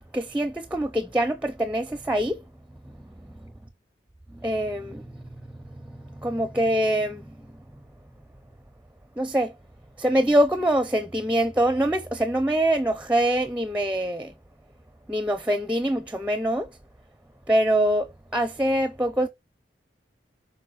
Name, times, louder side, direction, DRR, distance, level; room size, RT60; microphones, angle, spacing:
voice 1, 0.1-2.4 4.4-5.1 6.2-7.3 9.2-9.5 10.0-14.3 15.1-16.7 17.5-19.3, right 1 dB, 5° right, 0.5 m, -24 dB
6.0 x 5.1 x 6.2 m
head